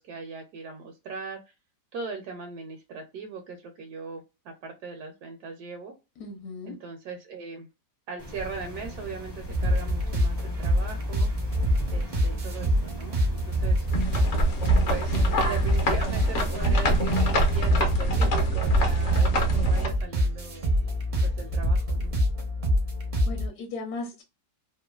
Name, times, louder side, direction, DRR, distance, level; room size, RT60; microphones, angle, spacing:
voice 1, 0.0-1.5 1.9-5.9 6.7-7.7 8.1-11.3 11.9-13.9 14.9-20.7 21.2-22.2, right 5 dB, 75° right, 1.1 m, -39 dB
voice 2, 6.2-6.7 16.6-16.9 17.3-17.4 23.2-24.2, left 3 dB, 70° left, 1.1 m, -37 dB
sound 1, 8.2-17.6, equal, 25° left, 0.5 m, -39 dB
sound 2, 9.5-23.5, equal, 50° right, 0.5 m, -26 dB
sound 3, 13.9-19.9, right 1 dB, 55° left, 0.9 m, -25 dB
3.0 x 2.1 x 2.2 m
omnidirectional pair, 1.8 m